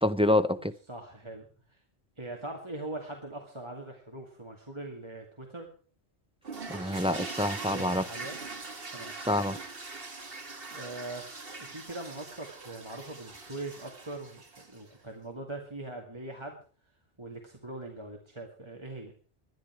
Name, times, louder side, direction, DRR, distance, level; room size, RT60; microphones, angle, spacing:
voice 1, 0.0-0.7 6.7-8.0 9.3-9.6, left 1 dB, 5° right, 0.5 m, -27 dB
voice 2, 0.9-1.8 2.2-5.7 7.6-8.4 8.9-9.1 10.7-11.3 11.6-16.6 17.2-19.1, right 2 dB, 25° right, 2.3 m, -41 dB
sound 1, 6.4-14.9, right 3 dB, 55° right, 2.1 m, -42 dB
20.0 x 12.0 x 4.6 m
omnidirectional pair, 1.1 m